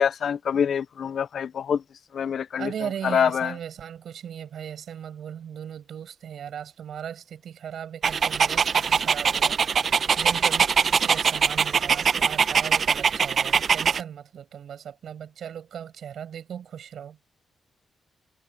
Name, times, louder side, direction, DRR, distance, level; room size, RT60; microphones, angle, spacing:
voice 1, 0.0-1.8 2.1-2.7 3.0-3.5, left 8 dB, 70° left, 0.6 m, -25 dB
voice 2, 2.6-17.2, right 9 dB, 75° right, 6.3 m, -37 dB
Dog, 8.0-14.0, right 6 dB, 60° right, 0.7 m, -22 dB
cardioid pair, 70°, 0 cm